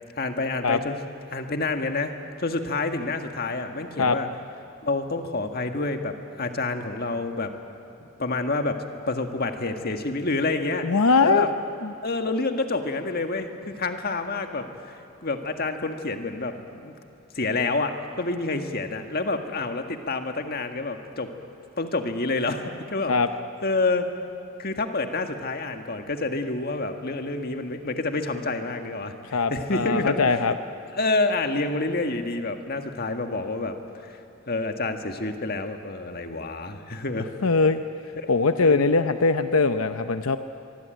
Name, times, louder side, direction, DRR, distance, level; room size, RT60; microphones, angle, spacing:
voice 1, 0.2-1.0 1.3-2.1 2.4-4.3 4.8-7.5 8.0-8.8 9.1-10.9 11.2-11.5 12.0-16.9 17.4-21.3 21.8-23.2 23.6-24.1 24.6-29.1 29.5-30.4 31.0-33.8 34.0-34.1 34.5-37.3 38.2-38.3 38.6-38.8, left 3 dB, 45° left, 6 dB, 1.8 m, -28 dB
voice 2, 10.8-11.5 11.8-11.9 23.1-23.3 29.3-30.5 37.4-37.8 38.3-40.4, left 4 dB, 90° left, 9 dB, 0.8 m, -21 dB
24.0 x 23.5 x 9.2 m, 2.9 s
head